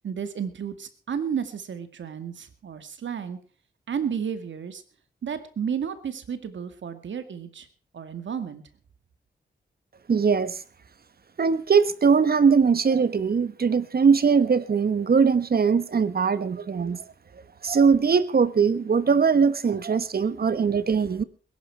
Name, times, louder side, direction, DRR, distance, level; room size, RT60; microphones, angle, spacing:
voice 1, 0.0-3.4 3.9-4.8 5.2-7.7 7.9-8.6, right 7 dB, 80° right, 10 dB, 2.0 m, -32 dB
voice 2, 10.1-10.6 11.4-17.0 17.6-21.2, right 5 dB, 55° right, 15 dB, 1.3 m, -21 dB
21.0 x 11.5 x 4.6 m, 0.40 s
cardioid pair, 75°, 19 cm